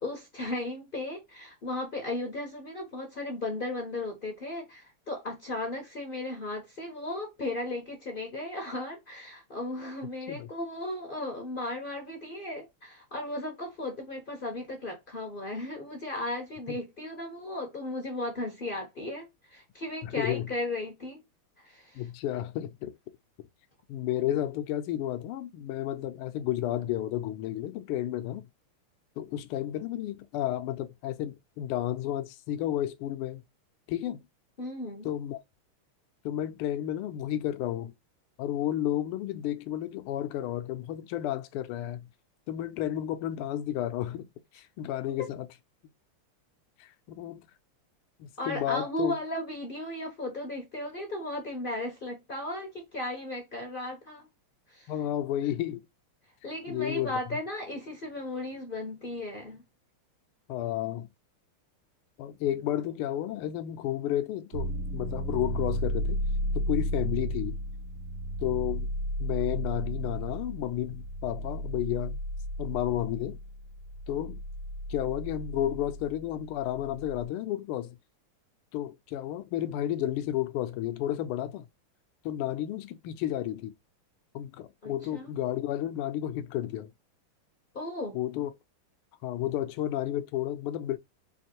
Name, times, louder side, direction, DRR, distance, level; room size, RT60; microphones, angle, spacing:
voice 1, 0.0-21.2 21.6-22.0 34.6-35.1 48.4-54.3 54.7-54.9 56.4-59.6 84.8-85.3 87.7-88.2, left 1 dB, 50° left, 0.6 m, -36 dB
voice 2, 20.0-20.5 21.9-23.0 23.9-28.5 29.2-33.4 33.9-34.2 35.0-35.4 36.2-37.9 38.4-42.1 42.5-44.3 44.5-45.5 46.8-47.4 48.2-49.2 54.9-55.8 56.7-57.2 60.5-61.1 62.2-66.2 66.5-67.5 68.4-68.9 69.2-72.2 72.6-73.4 74.1-74.4 74.9-78.0 78.7-81.7 82.2-83.7 84.3-86.9 88.1-88.5 89.2-91.0, left 12 dB, 80° left, 1.5 m, -32 dB
sound 1, 64.5-77.3, equal, 80° right, 0.9 m, -34 dB
4.8 x 2.6 x 2.8 m
omnidirectional pair, 2.4 m